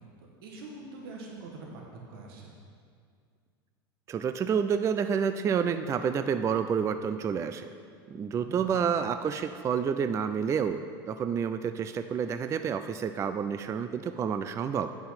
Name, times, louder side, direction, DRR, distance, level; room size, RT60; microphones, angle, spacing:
voice 1, 0.2-1.8 2.1-2.5 8.4-8.9, right 3 dB, 80° right, -1 dB, 1.6 m, -44 dB
voice 2, 4.1-7.7 8.1-10.8 11.1-14.9, right 7 dB, 25° right, 10 dB, 0.3 m, -29 dB
8.5 x 5.8 x 5.8 m, 2.2 s
supercardioid pair, 105°, 12 cm